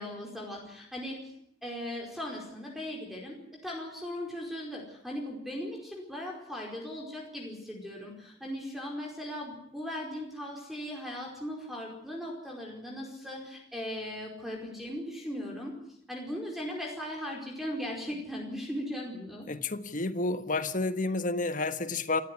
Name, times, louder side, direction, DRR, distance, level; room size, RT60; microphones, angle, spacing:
voice 1, 0.0-1.3 1.6-15.8 16.1-19.5, equal, ahead, -1 dB, 4.8 m, -38 dB
voice 2, 19.5-22.2, left 3 dB, 45° left, 10 dB, 1.5 m, -30 dB
28.5 x 15.0 x 9.9 m, 0.72 s
head